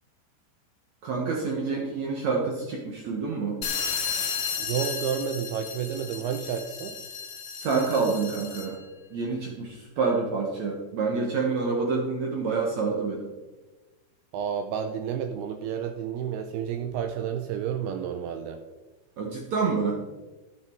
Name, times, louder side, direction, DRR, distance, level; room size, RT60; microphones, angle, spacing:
voice 1, 1.0-3.6 7.6-8.8 9.1-13.2 19.2-19.9, right 4 dB, 70° right, 0 dB, 1.7 m, -27 dB
sound 1, 3.6-8.8, left 6 dB, 90° left, 1.5 m, -33 dB
voice 2, 4.6-7.0 14.3-18.7, right 8 dB, 90° right, 7 dB, 2.3 m, -31 dB
12.0 x 9.3 x 4.5 m, 1.2 s
omnidirectional pair, 5.2 m